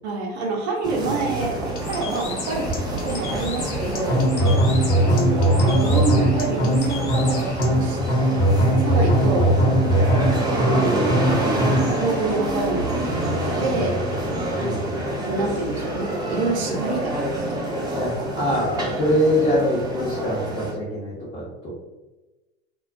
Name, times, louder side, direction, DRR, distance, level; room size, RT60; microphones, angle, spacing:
voice 1, 0.0-4.3 5.0-8.0 8.8-9.5 10.5-14.0 15.3-17.6 18.2-18.3 18.6-18.7, right 3 dB, 65° right, 0 dB, 0.6 m, -27 dB
sound 1, 0.8-20.7, right 1 dB, 10° right, 0.5 m, -27 dB
Bird, 1.7-7.7, left 4 dB, 80° left, 0.7 m, -36 dB
sound 2, 4.1-11.9, right 1 dB, 45° left, 1.0 m, -19 dB
voice 2, 4.1-4.6 9.6-10.0 13.3-14.1 14.5-14.9 17.9-21.7, left 1 dB, 25° left, -8 dB, 0.8 m, -25 dB
2.3 x 2.1 x 2.4 m, 1.1 s
figure-of-eight pair, 80°, 34 cm